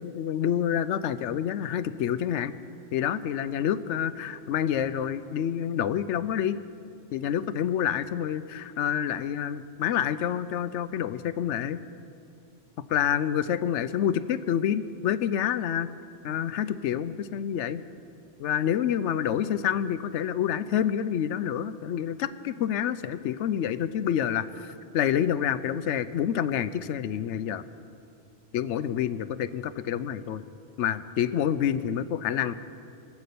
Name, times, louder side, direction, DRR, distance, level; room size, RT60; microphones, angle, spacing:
voice 1, 0.0-2.5 2.9-6.6 7.1-11.8 12.9-15.9 16.2-17.8 18.4-27.6 28.5-30.4 30.8-32.5, left 9 dB, 80° left, 14 dB, 0.9 m, -28 dB
23.0 x 8.3 x 6.9 m, 2.6 s
omnidirectional pair, 1.2 m